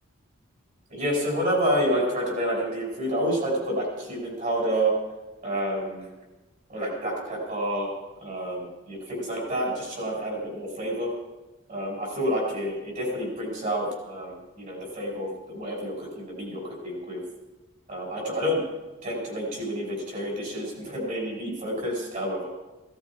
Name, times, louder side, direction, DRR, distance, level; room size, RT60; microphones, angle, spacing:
voice 1, 0.9-4.9 5.4-6.1 6.7-7.9 8.2-11.1 11.7-17.2 17.9-18.6 19.0-22.5, equal, 35° right, -1 dB, 5.8 m, -29 dB
16.5 x 14.5 x 4.9 m, 1.1 s
head